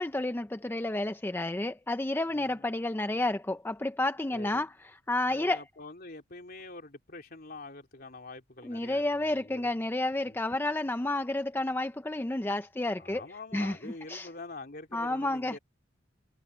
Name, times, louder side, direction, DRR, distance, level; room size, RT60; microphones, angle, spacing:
voice 1, 0.0-5.6 8.6-13.2 13.5-14.3 14.9-15.6, left 2 dB, 10° left, 0.5 m, -31 dB
voice 2, 2.3-2.6 4.3-4.7 5.3-9.8 10.2-10.4 13.0-15.6, left 2 dB, 50° left, 3.2 m, -45 dB
head